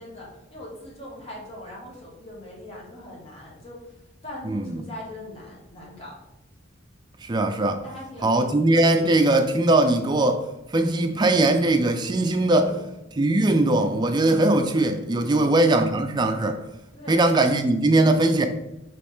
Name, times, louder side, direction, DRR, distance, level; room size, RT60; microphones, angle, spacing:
voice 1, 0.0-6.1 7.8-8.5 12.5-12.9 15.2-15.4 16.9-17.2, left 1 dB, 30° left, 1.1 m, -41 dB
voice 2, 4.4-4.8 7.2-7.8 8.2-10.5 10.7-12.7 13.2-16.6 17.1-18.5, right 2 dB, 20° right, 0.3 m, -20 dB
5.1 x 3.1 x 3.1 m
head